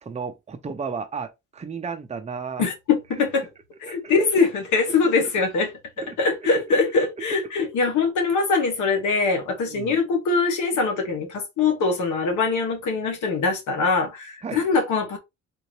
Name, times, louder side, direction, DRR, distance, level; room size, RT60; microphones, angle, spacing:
voice 1, 0.0-2.7 3.9-4.1 6.7-7.2 9.7-10.0 14.4-14.7, right 5 dB, 20° right, 0.6 m, -34 dB
voice 2, 2.6-3.5 3.8-5.7 6.2-15.2, left 4 dB, 75° left, 1.3 m, -22 dB
3.7 x 2.7 x 3.1 m
cardioid pair, 90°, 30 cm